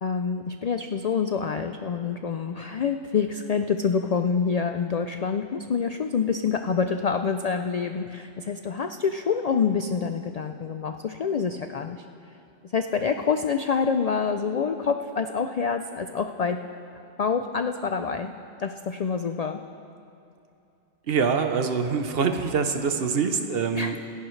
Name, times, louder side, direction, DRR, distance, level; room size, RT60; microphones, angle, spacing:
voice 1, 0.0-12.0 12.7-16.6 17.2-18.3 18.6-19.6 23.7-24.0, left 6 dB, 65° left, 7 dB, 0.3 m, -27 dB
voice 2, 21.1-24.0, right 5 dB, 60° right, 7 dB, 1.0 m, -25 dB
26.0 x 11.0 x 3.2 m, 2.7 s
omnidirectional pair, 1.2 m